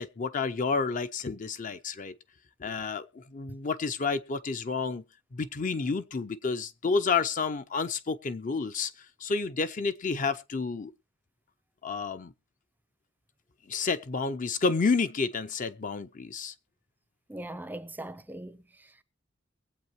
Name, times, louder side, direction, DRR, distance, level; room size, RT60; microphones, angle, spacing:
voice 1, 0.0-2.1 2.6-5.0 5.3-10.9 11.8-12.3 13.7-16.5, left 4 dB, 40° left, 0.5 m, -30 dB
voice 2, 17.3-19.0, right 1 dB, 10° right, 0.5 m, -41 dB
22.5 x 7.9 x 3.0 m
head